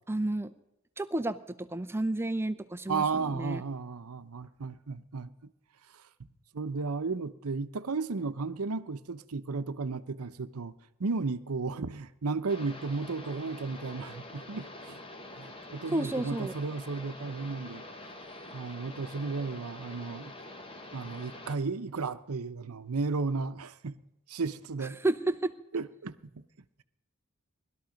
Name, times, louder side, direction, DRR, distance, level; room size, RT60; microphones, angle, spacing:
voice 1, 0.1-0.5 1.0-1.4 1.7-3.6 15.9-16.5 25.0-25.5, right 2 dB, 10° right, 0.6 m, -31 dB
voice 2, 2.9-5.3 5.9-6.0 6.5-10.7 11.0-15.0 15.4-17.8 18.5-20.3 20.9-24.0 24.3-25.0 25.7-26.4, right 4 dB, 85° right, 0.8 m, -34 dB
sound 1, 12.5-21.6, left 1 dB, 25° left, 1.2 m, -46 dB
20.0 x 12.5 x 5.1 m
head